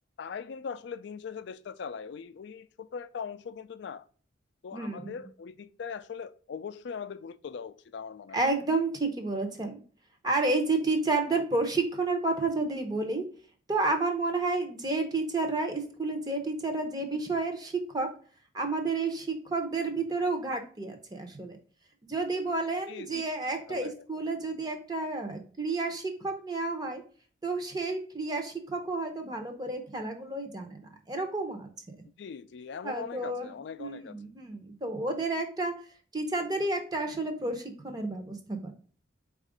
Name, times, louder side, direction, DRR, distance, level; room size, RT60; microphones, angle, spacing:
voice 1, 0.2-4.1 4.6-8.4 22.9-23.2 23.7-24.0 32.2-34.1, left 6 dB, 60° left, 0.3 m, -40 dB
voice 2, 4.7-5.3 8.3-9.8 10.2-13.3 13.7-18.1 18.5-21.6 22.0-27.0 27.4-31.7 32.8-35.7 36.1-38.7, right 3 dB, 20° right, 0.7 m, -31 dB
4.4 x 2.4 x 4.8 m
head